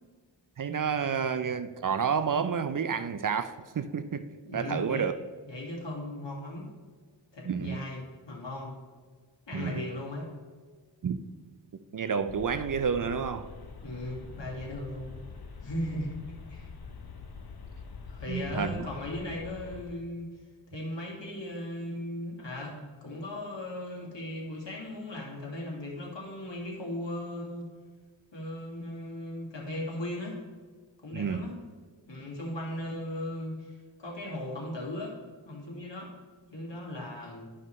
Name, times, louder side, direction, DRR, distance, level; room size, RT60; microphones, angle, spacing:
voice 1, 0.6-4.3 4.5-5.1 7.5-7.9 9.5-9.9 11.0-11.2 11.9-13.5 18.3-18.9 31.1-31.5, right 6 dB, 45° right, 0.5 m, -30 dB
voice 2, 4.4-5.1 5.5-6.7 7.3-8.7 9.5-10.3 13.8-15.1 15.6-16.2 16.5-16.7 18.1-20.3 20.7-27.7 28.3-30.4 31.0-31.5 32.1-35.1 35.5-36.1 36.5-37.5, left 1 dB, 70° left, 2.1 m, -37 dB
sound 1, 12.3-20.0, left 4 dB, 55° left, 0.9 m, -45 dB
11.5 x 5.4 x 3.1 m
wide cardioid pair, 55°, 45 cm